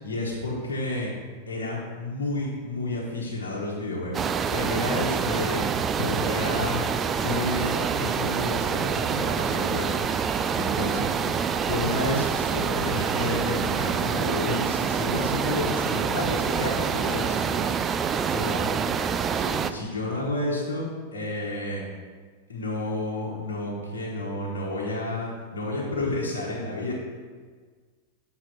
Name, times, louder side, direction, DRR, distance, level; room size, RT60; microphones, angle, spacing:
voice 1, 0.0-1.1 1.5-5.6 6.0-6.8 7.2-9.9 10.6-11.1 11.6-17.5 18.3-18.7 19.3-21.8 22.5-26.9, left 2 dB, 65° left, -5 dB, 1.4 m, -30 dB
sound 1, 4.1-19.7, right 6 dB, 25° right, 0.3 m, -26 dB
voice 2, 18.2-19.4 26.9-27.0, right 2 dB, 80° right, -4 dB, 1.8 m, -42 dB
7.5 x 4.1 x 5.9 m, 1.5 s
figure-of-eight pair, 90°, 0 cm